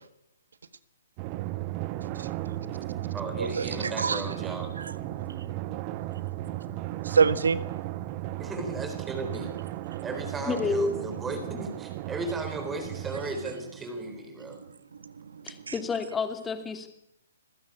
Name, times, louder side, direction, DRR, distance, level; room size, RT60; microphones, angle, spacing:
Drum, 1.2-14.3, right 16 dB, 30° right, 1.1 m, -36 dB
voice 1, 2.2-4.3 4.8-5.8 7.0-8.0 9.9-10.0 14.5-14.7 15.0-15.7, right 5 dB, 65° right, 14 dB, 1.4 m, -30 dB
voice 2, 3.1-4.7 8.4-9.5 10.0-14.6, right 2 dB, 10° right, 6 dB, 4.1 m, -35 dB
voice 3, 10.4-10.9 15.4-16.9, left 4 dB, 10° left, 7 dB, 2.7 m, -29 dB
26.0 x 15.5 x 8.5 m, 0.86 s
figure-of-eight pair, 130°, 0 cm